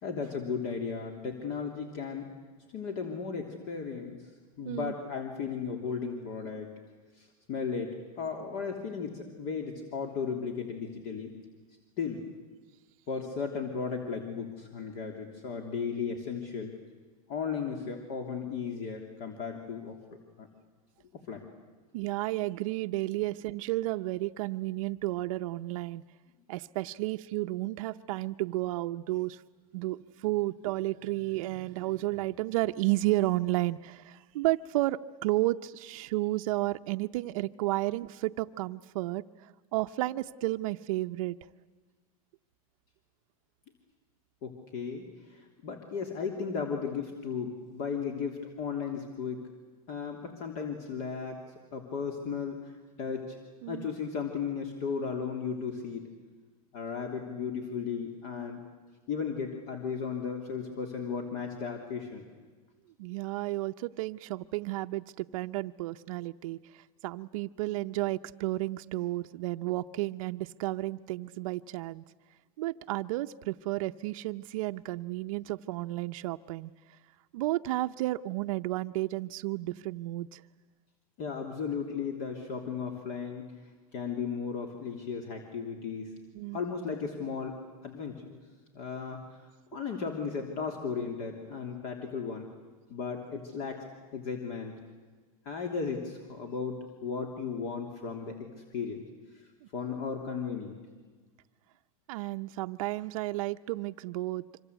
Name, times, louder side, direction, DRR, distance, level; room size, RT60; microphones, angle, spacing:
voice 1, 0.0-2.3 2.7-4.3 4.6-6.7 7.2-11.3 12.0-12.2 13.1-16.7 17.3-20.0 20.4-20.5 21.1-21.5 44.4-49.4 49.9-51.4 51.7-52.7 53.0-53.4 53.7-56.0 56.7-58.6 59.1-62.3 81.2-86.1 86.5-88.4 88.7-92.5 92.9-93.9 94.1-94.7 95.4-98.4 98.7-99.0 99.3-100.8, left 6 dB, 50° left, 3 dB, 3.2 m, -35 dB
voice 2, 21.9-26.0 26.5-29.4 29.7-41.4 53.6-53.9 63.0-72.0 72.6-76.7 77.3-80.4 86.3-86.6 102.1-104.6, right 18 dB, 60° right, 7 dB, 0.7 m, -32 dB
25.5 x 25.5 x 8.2 m, 1.4 s
supercardioid pair, 130°, 19 cm